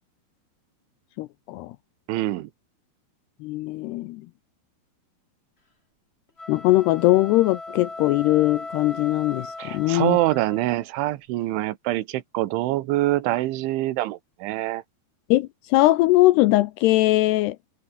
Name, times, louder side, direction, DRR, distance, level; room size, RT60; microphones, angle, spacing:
voice 1, 1.2-1.8 3.4-4.2 6.5-10.2 15.3-17.6, left 18 dB, 80° left, 2.5 m, -20 dB
voice 2, 2.1-2.5 9.6-14.8, right 16 dB, 85° right, 3.6 m, -25 dB
sound 1, 6.3-10.8, left 2 dB, 15° left, 3.1 m, -38 dB
omnidirectional pair, 5.3 m